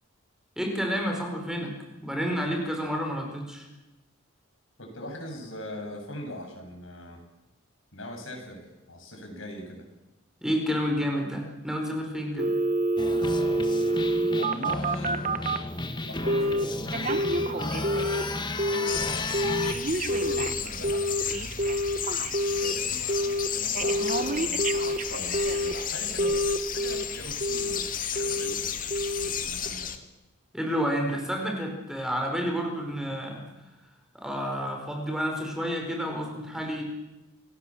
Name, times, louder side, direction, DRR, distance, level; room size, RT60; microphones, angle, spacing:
voice 1, 0.6-1.7 2.0-3.7 10.4-12.5 30.5-33.4 34.1-36.8, equal, 5° right, 2 dB, 4.7 m, -30 dB
voice 2, 4.8-7.2 7.9-9.8 14.3-15.2 15.9-19.4 20.0-21.0 22.5-26.4 26.7-28.8 29.2-29.9, left 1 dB, 70° left, 2 dB, 7.6 m, -41 dB
Telephone, 12.4-15.7 16.3-16.6 16.9-18.3 18.6-19.0 19.3-22.7 23.1-23.5 23.7-25.8 26.2-27.0 27.4-27.8 28.2-28.5 28.9-29.3 29.7-29.8, right 1 dB, 40° right, 1.3 m, -27 dB
sound 1, 13.0-19.7, left 2 dB, 20° left, 1.6 m, -33 dB
sound 2, 18.9-30.0, left 8 dB, 40° left, 2.1 m, -33 dB
28.0 x 19.0 x 7.5 m, 1.0 s
head